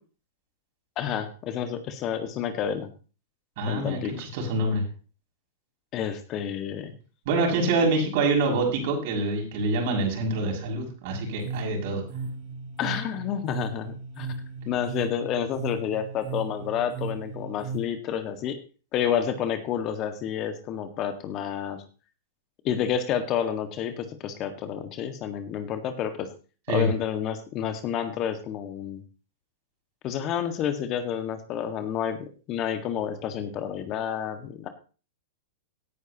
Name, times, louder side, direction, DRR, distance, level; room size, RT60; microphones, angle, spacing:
voice 1, 1.0-2.9 3.7-4.1 5.9-6.9 7.8-7.9 12.8-14.3 14.7-18.6 18.9-21.8 22.6-26.3 26.7-29.0 30.0-34.7, left 9 dB, 40° left, 8 dB, 1.7 m, -29 dB
voice 2, 3.6-4.8 7.2-12.0 26.7-26.9, right 2 dB, 60° right, 1 dB, 6.5 m, -26 dB
sound 1, 11.1-17.8, right 3 dB, 45° right, 4.3 m, -36 dB
17.0 x 9.6 x 3.0 m, 0.35 s
hypercardioid pair, 115°, 0 cm